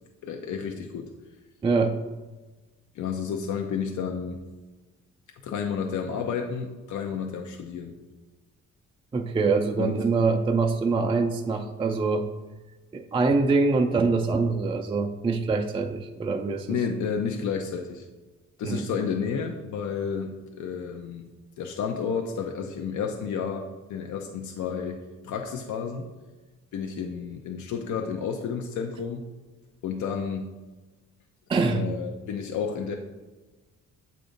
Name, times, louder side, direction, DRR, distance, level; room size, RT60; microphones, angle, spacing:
voice 1, 0.2-1.1 2.9-4.4 5.4-7.9 9.8-9.9 16.7-18.1 18.6-21.2 21.6-26.1 26.7-29.2 29.8-30.5 31.7-32.9, left 6 dB, 70° left, 3 dB, 0.6 m, -31 dB
voice 2, 1.6-2.0 9.1-12.3 12.9-16.8 18.6-18.8 31.5-31.8, right 4 dB, 20° right, 4 dB, 0.4 m, -24 dB
7.6 x 2.6 x 5.1 m, 1.2 s
cardioid pair, 90°, 30 cm